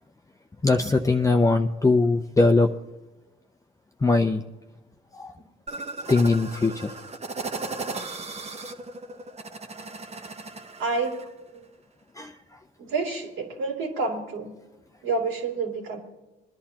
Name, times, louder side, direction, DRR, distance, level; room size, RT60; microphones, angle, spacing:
voice 1, 0.6-2.7 4.0-4.4 5.1-5.3 6.1-6.9 12.2-12.3, left 3 dB, 15° left, 4 dB, 0.6 m, -21 dB
sound 1, 5.7-11.3, right 3 dB, 30° right, 1.0 m, -36 dB
voice 2, 10.8-11.2 11.5-11.7 12.8-14.5 15.0-16.0, right 3 dB, 90° right, -1 dB, 3.2 m, -28 dB
22.5 x 11.0 x 2.9 m, 1.1 s
cardioid pair, 90°, 20 cm